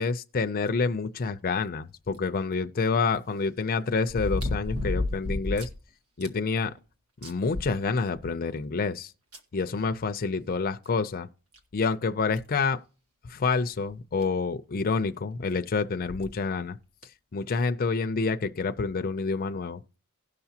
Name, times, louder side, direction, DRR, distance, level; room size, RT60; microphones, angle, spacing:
voice 1, 0.0-5.7 6.2-6.7 7.2-9.1 9.5-11.3 11.7-12.8 13.3-16.8 17.3-19.8, left 4 dB, 40° left, 0.5 m, -28 dB
sound 1, 2.1-2.2 4.1-5.8 6.2-6.3 6.8-6.9 7.2-8.3 9.3-9.4 10.9-11.0 11.5-11.6 12.4-12.6 13.9-14.0 14.2-14.3 16.0-16.3 17.0-17.1, left 2 dB, 80° right, 1.5 m, -31 dB
17.5 x 5.8 x 2.8 m
head